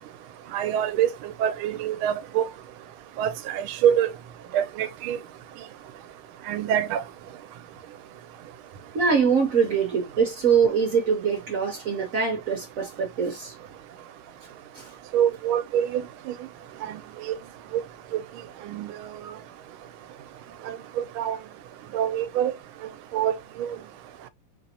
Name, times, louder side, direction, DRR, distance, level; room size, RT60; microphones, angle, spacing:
voice 1, 0.5-2.5 3.2-4.1 4.5-5.2 6.5-7.0 15.1-16.0 16.8-17.3 18.1-18.2 18.7-18.9 19.3-19.4 20.7-21.4 21.9-22.5 23.1-23.8, right 10 dB, 90° right, 1.4 m, -25 dB
voice 2, 8.9-13.5 14.8-14.9, right 6 dB, 55° right, 1.0 m, -23 dB
4.2 x 2.6 x 2.7 m
omnidirectional pair, 2.2 m